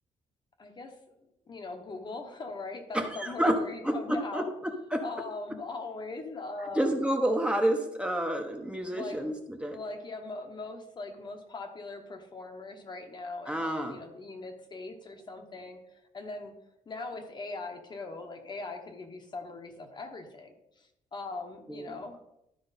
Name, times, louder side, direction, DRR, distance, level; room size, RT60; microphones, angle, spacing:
voice 1, 0.6-0.9 1.5-4.5 5.0-7.0 8.9-9.4 9.7-16.5 16.9-22.2, left 3 dB, 35° left, 5 dB, 1.1 m, -40 dB
voice 2, 2.9-3.6 3.8-5.0 6.7-9.8 13.5-14.0 21.7-22.0, right 1 dB, 10° right, 3 dB, 0.9 m, -29 dB
12.0 x 4.6 x 4.1 m, 0.83 s
cardioid pair, 120°, 13 cm